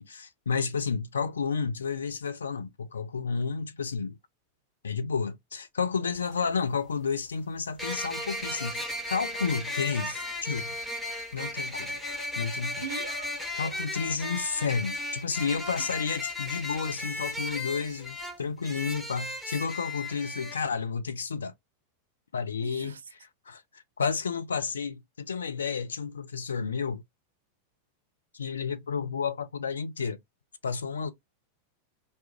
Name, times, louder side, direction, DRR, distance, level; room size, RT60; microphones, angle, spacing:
voice 1, 0.0-4.2 4.8-10.7 11.3-12.0 12.4-12.8 13.6-21.5 22.3-27.0 28.3-30.2 30.6-31.1, left 5 dB, 70° left, 0.4 m, -31 dB
sound 1, 6.2-6.3 7.8-20.6, left 2 dB, 5° left, 0.7 m, -35 dB
voice 2, 12.8-13.7 22.6-23.0, right 6 dB, 70° right, 0.4 m, -41 dB
2.2 x 2.1 x 2.8 m
figure-of-eight pair, 90°, 0 cm